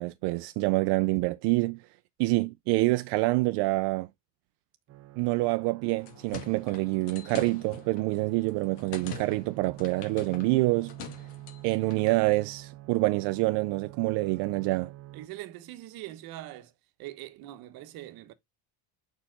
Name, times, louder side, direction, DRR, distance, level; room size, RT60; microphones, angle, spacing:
voice 1, 0.0-1.8 2.2-4.1 5.2-10.9 11.6-14.9, right 21 dB, 85° right, 0.5 m, -26 dB
sound 1, 4.9-15.3, right 16 dB, 40° right, 0.7 m, -47 dB
sound 2, 5.8-12.2, left 6 dB, 80° left, 2.2 m, -45 dB
voice 2, 15.1-16.7 17.0-18.3, right 15 dB, 65° right, 1.1 m, -42 dB
5.7 x 4.5 x 3.8 m
cardioid pair, 165°, 39 cm